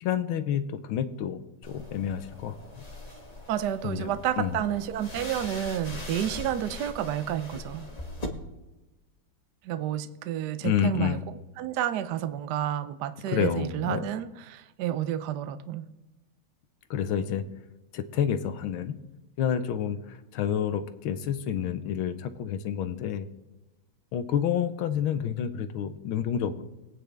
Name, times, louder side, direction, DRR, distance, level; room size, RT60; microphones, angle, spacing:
voice 1, 0.0-2.9 3.8-4.6 10.6-11.2 13.3-14.0 16.9-17.5 17.9-19.0 19.4-23.3 24.1-26.6, left 9 dB, 80° left, 1.6 m, -29 dB
sound 1, 1.6-8.3, left 1 dB, 25° left, 1.1 m, -41 dB
voice 2, 3.5-7.9 9.6-11.2 11.6-15.9, right 11 dB, 70° right, 1.0 m, -30 dB
22.0 x 9.0 x 3.4 m
omnidirectional pair, 2.3 m